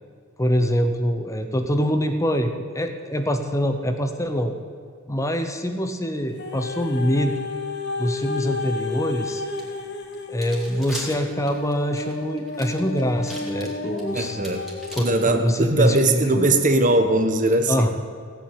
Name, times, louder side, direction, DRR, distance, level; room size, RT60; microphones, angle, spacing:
voice 1, 0.4-4.5 5.1-7.4 8.0-9.4 10.3-14.4 14.9-16.5 17.7-17.9, equal, 15° left, 6 dB, 0.8 m, -24 dB
sound 1, 6.4-15.5 16.1-16.2, left 3 dB, 55° left, 1.5 m, -32 dB
sound 2, 9.6-9.7 10.1-15.0, equal, ahead, 2.9 m, -38 dB
voice 2, 14.1-14.6 15.0-17.8, right 2 dB, 35° right, 7 dB, 1.2 m, -20 dB
16.5 x 8.7 x 8.8 m, 2.3 s
head